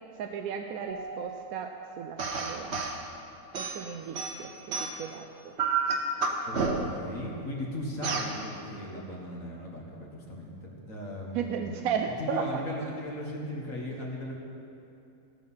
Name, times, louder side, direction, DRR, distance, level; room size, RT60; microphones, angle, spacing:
voice 1, 0.1-2.7 3.6-4.5 4.8-5.6 11.3-12.5, right 7 dB, 70° right, 4 dB, 1.0 m, -35 dB
Keyboard (musical), 0.9-3.1, right 3 dB, 35° right, 1.3 m, -45 dB
sound 1, 2.2-3.0 3.5-5.1 5.6-7.1 8.0-8.3, right 4 dB, 50° right, 1.1 m, -30 dB
voice 2, 6.5-14.3, left 1 dB, 60° left, -2 dB, 2.0 m, -37 dB
17.0 x 6.2 x 5.6 m, 2.7 s
omnidirectional pair, 1.6 m